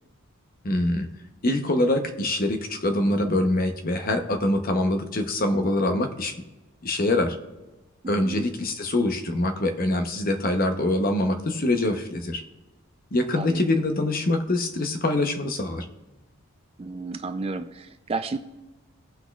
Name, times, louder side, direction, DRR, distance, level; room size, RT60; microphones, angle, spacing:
voice 1, 0.6-1.1 1.4-6.3 6.8-7.4 8.1-12.4 13.1-15.8, left 1 dB, 40° left, 6 dB, 0.8 m, -24 dB
voice 2, 8.0-8.5 13.4-13.6 16.8-18.4, right 3 dB, 25° right, 9 dB, 0.3 m, -32 dB
17.5 x 6.1 x 2.3 m, 1.1 s
head